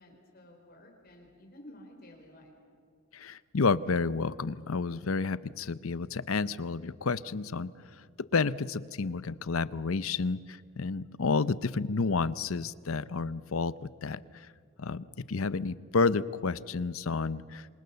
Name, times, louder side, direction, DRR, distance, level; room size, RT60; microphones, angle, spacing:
voice 1, 0.0-2.5, left 1 dB, 45° left, 2 dB, 4.1 m, -52 dB
voice 2, 3.1-7.7 8.3-14.2 14.8-17.7, left 4 dB, 85° left, 16 dB, 0.7 m, -30 dB
27.5 x 25.5 x 6.9 m, 2.1 s
head